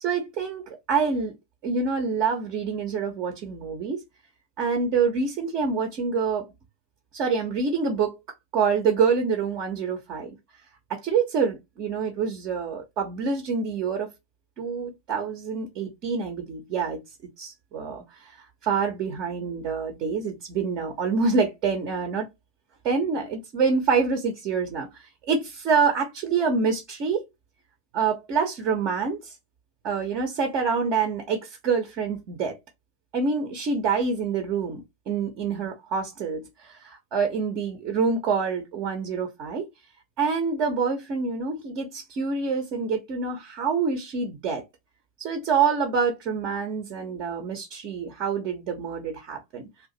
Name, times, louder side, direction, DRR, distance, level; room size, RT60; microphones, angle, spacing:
voice 1, 0.0-1.3 1.6-4.0 4.6-6.5 7.1-8.2 8.5-10.4 10.9-14.1 14.6-17.0 17.4-18.4 18.6-22.3 22.8-27.2 27.9-29.4 29.8-32.6 33.1-39.7 40.2-44.6 45.2-49.6, right 5 dB, 40° right, 0.8 m, -26 dB
2.7 x 2.5 x 4.0 m
figure-of-eight pair, 90°, 0 cm